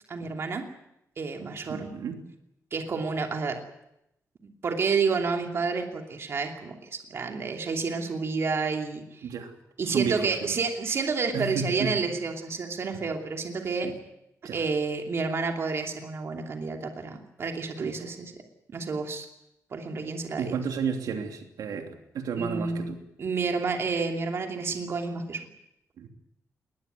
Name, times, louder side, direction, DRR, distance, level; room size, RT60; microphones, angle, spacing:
voice 1, 0.1-0.7 1.2-1.9 2.7-3.6 4.6-9.3 9.8-13.9 14.5-18.3 18.7-19.3 19.7-20.6 22.4-22.9 23.2-25.5, right 4 dB, 45° right, 3 dB, 2.8 m, -30 dB
voice 2, 1.7-2.2 9.2-9.5 9.9-10.5 11.3-11.9 13.8-13.9 14.4-14.6 17.8-17.9 20.4-23.0 26.0-26.1, right 6 dB, 90° right, 4 dB, 3.1 m, -32 dB
20.5 x 20.5 x 9.4 m, 0.84 s
wide cardioid pair, 150°, 6 cm